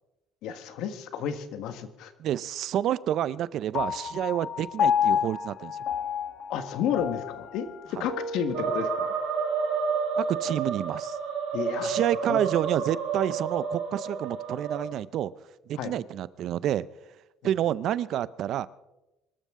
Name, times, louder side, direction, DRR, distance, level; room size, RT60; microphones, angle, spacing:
voice 1, 0.4-2.1 6.5-9.1 11.5-12.0 12.3-12.4 15.8-15.9 17.4-17.5, left 8 dB, 70° left, 10 dB, 1.5 m, -32 dB
voice 2, 2.2-5.8 8.0-8.1 10.2-11.2 11.8-15.3 15.7-16.9 17.4-18.7, right 11 dB, 60° right, 18 dB, 0.5 m, -29 dB
Piano, 3.7-10.4, left 8 dB, 55° left, 1.3 m, -31 dB
sound 1, 8.5-14.9, right 5 dB, 85° right, 4.6 m, -30 dB
24.5 x 13.0 x 3.7 m, 0.98 s
cardioid pair, 120°, 0 cm